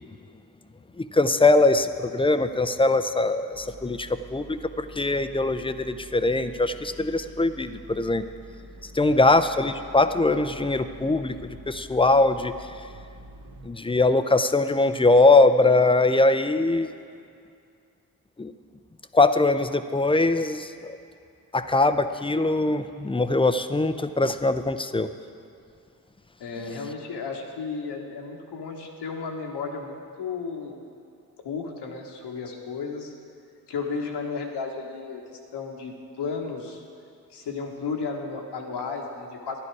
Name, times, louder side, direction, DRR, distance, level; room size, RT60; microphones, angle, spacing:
voice 1, 1.0-8.3 8.8-12.5 13.6-16.9 18.4-18.5 19.1-21.0 21.5-25.1 26.7-26.9, left 2 dB, 15° left, 10 dB, 0.5 m, -22 dB
sound 1, 3.5-13.7, equal, 35° right, 1.1 m, -46 dB
voice 2, 9.0-9.3 26.4-30.8 31.4-33.1 33.7-35.2 35.5-36.8 37.3-39.6, left 4 dB, 75° left, 2 dB, 1.4 m, -33 dB
11.0 x 9.8 x 4.7 m, 2.4 s
supercardioid pair, 45°, 41 cm